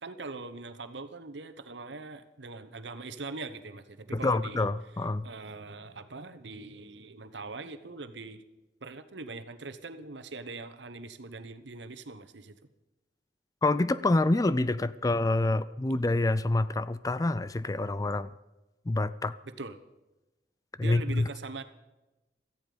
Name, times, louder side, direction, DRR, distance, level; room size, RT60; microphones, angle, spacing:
voice 1, 0.0-4.7 5.2-8.4 8.8-12.6 19.4-19.8 20.8-21.6, right 3 dB, 80° right, 10 dB, 1.1 m, -42 dB
voice 2, 4.1-5.3 13.6-18.3 18.9-19.4 20.8-21.3, left 2 dB, 20° left, 16 dB, 0.4 m, -27 dB
17.0 x 14.0 x 5.1 m, 1.0 s
head